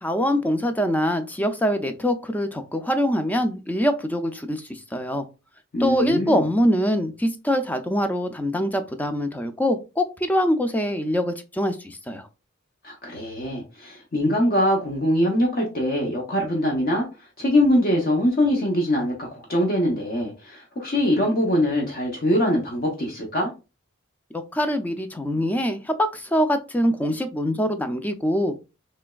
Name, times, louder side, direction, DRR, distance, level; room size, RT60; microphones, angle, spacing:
voice 1, 0.0-5.3 5.8-12.3 24.3-28.5, equal, 10° left, 0.3 m, -24 dB
voice 2, 5.7-6.4 12.8-17.1 17.4-23.5, left 1 dB, 50° left, 0.7 m, -23 dB
3.2 x 3.0 x 2.2 m
head